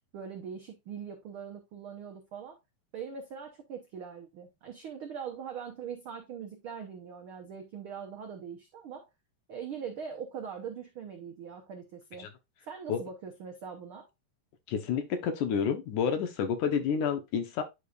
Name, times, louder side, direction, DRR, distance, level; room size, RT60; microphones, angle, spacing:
voice 1, 0.1-2.6 2.9-9.1 9.5-12.3 12.7-14.1, right 7 dB, 90° right, 1.1 m, -42 dB
voice 2, 14.7-17.6, left 7 dB, 70° left, 2.5 m, -29 dB
10.0 x 5.0 x 2.4 m
omnidirectional pair, 3.8 m